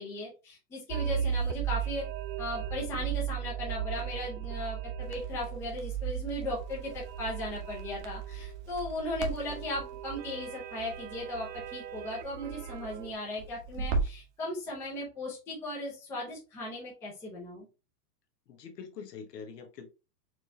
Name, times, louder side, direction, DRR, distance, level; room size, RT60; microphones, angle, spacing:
voice 1, 0.0-2.1 2.4-17.7, left 1 dB, 5° left, -4 dB, 0.6 m, -37 dB
sound 1, 0.9-13.1, right 9 dB, 90° right, 0.6 m, -36 dB
Crackle, 5.0-14.3, right 4 dB, 45° right, 0.9 m, -40 dB
voice 2, 18.5-19.9, left 6 dB, 75° left, 6 dB, 1.3 m, -44 dB
4.3 x 3.3 x 2.6 m, 0.30 s
supercardioid pair, 160°, 49 cm